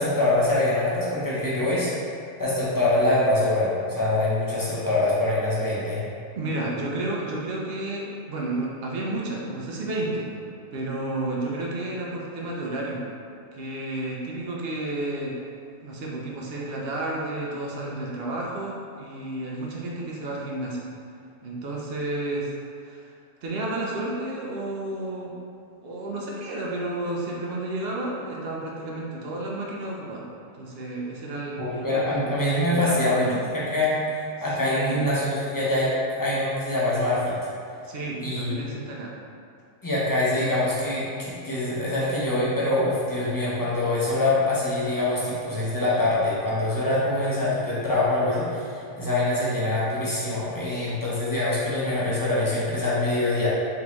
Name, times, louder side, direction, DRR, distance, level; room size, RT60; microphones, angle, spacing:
voice 1, 0.0-1.9 2.4-6.0 31.6-33.3 33.5-35.9 36.2-37.3 38.2-38.6 39.8-53.5, left 2 dB, 25° left, -9 dB, 0.4 m, -24 dB
voice 2, 6.4-10.3 10.7-13.0 13.5-15.4 15.8-20.9 21.4-22.5 22.8-23.1 23.4-25.3 25.8-30.3 30.5-32.3 32.7-33.4 34.6-35.0 37.8-39.1, right 2 dB, 60° right, -3 dB, 0.6 m, -31 dB
3.8 x 3.7 x 3.0 m, 2.4 s
omnidirectional pair, 1.6 m